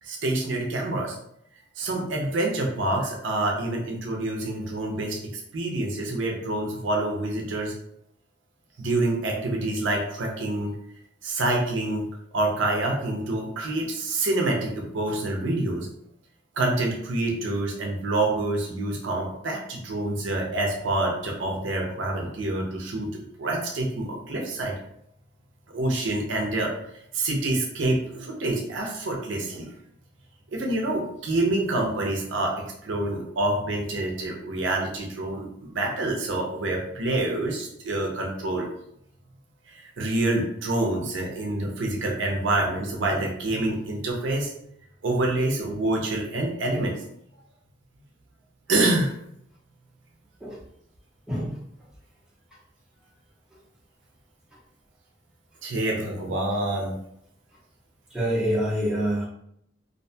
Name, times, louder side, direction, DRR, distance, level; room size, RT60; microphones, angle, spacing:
voice 1, 0.0-1.2 1.8-7.7 8.8-10.7 11.2-12.0 12.3-15.9 16.5-24.7 25.7-26.7 27.1-29.7 30.5-38.7 39.7-44.5 45.0-47.0 48.7-49.2 55.6-56.9, right 2 dB, 75° right, 1 dB, 0.5 m, -27 dB
voice 2, 51.3-51.6 58.1-59.3, equal, 5° right, -8 dB, 0.7 m, -26 dB
2.5 x 2.2 x 2.7 m, 0.74 s
head